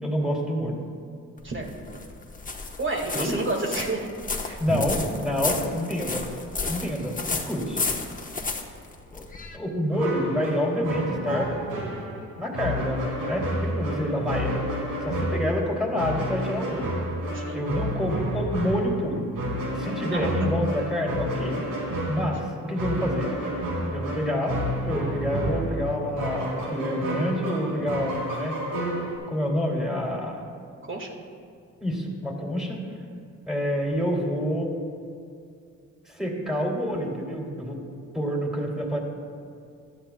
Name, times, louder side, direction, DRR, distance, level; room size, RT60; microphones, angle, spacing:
voice 1, 0.0-0.8 3.1-3.3 4.6-6.2 6.7-7.8 9.1-9.2 9.5-11.5 12.4-14.6 15.0-16.9 17.5-19.3 19.7-21.7 22.1-23.3 23.9-24.6 24.9-28.6 29.3-30.5 31.8-32.8 33.5-34.7 36.1-37.8 38.1-39.0, equal, ahead, -2 dB, 2.8 m, -28 dB
sound 1, 1.4-9.6, left 3 dB, 25° left, 1.1 m, -32 dB
voice 2, 2.8-4.1 4.4-4.8 17.3-17.6 20.1-20.5 30.8-31.2, right 2 dB, 35° right, 1 dB, 1.9 m, -30 dB
sound 2, 9.9-29.2, equal, 80° right, 2.5 m, -30 dB
16.0 x 11.5 x 2.3 m, 2.3 s
cardioid pair, 75°, 34 cm